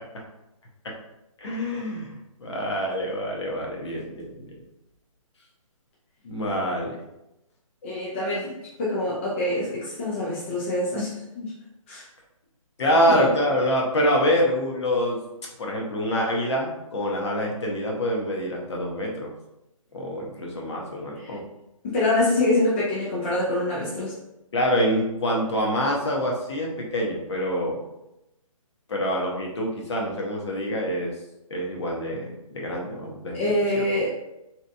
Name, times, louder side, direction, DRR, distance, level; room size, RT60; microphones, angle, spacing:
voice 1, 1.4-2.1 2.4-4.5 6.2-7.0 12.8-15.2 15.6-19.3 19.9-21.4 24.5-27.8 28.9-31.1 31.5-33.4 33.7-33.8, equal, 50° left, -1 dB, 0.7 m, -26 dB
voice 2, 7.8-8.5 8.8-11.5 11.9-12.0 13.1-13.3 21.2-21.4 21.8-24.1 33.3-34.2, left 1 dB, 20° left, -6 dB, 0.4 m, -25 dB
2.8 x 2.3 x 2.2 m, 0.89 s
figure-of-eight pair, 150°, 18 cm